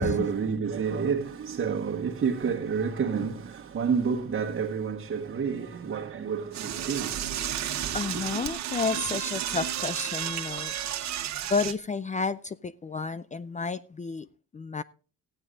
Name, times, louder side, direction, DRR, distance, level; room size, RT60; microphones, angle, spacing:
voice 1, 0.0-8.0, right 6 dB, 40° right, 1.4 m, -29 dB
Door / Toilet flush, 6.5-11.7, right 10 dB, 65° right, 1.1 m, -32 dB
voice 2, 7.9-10.7 11.5-14.3 14.5-14.8, left 4 dB, 25° left, 0.5 m, -31 dB
14.5 x 9.6 x 3.8 m
cardioid pair, 90°, 30 cm